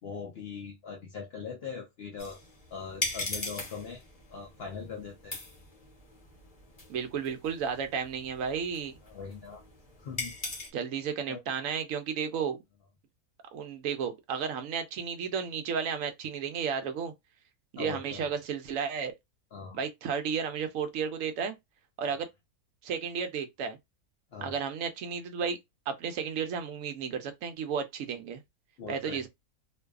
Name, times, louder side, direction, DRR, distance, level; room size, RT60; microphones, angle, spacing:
voice 1, 0.0-2.4 2.7-4.0 4.3-5.4 9.1-9.6 10.0-10.3 11.3-11.4 17.8-18.2 19.5-19.8 24.3-24.6 28.8-29.2, left 5 dB, 70° left, 0.6 m, -41 dB
sound 1, 2.2-10.7, left 2 dB, 30° left, 0.8 m, -40 dB
voice 2, 6.9-9.0 10.7-12.6 13.5-17.1 17.7-19.1 19.7-21.6 22.0-22.3 22.8-23.8 24.4-25.6 25.9-28.4 28.9-29.3, right 6 dB, 70° right, 0.9 m, -33 dB
2.6 x 2.3 x 2.3 m
omnidirectional pair, 1.6 m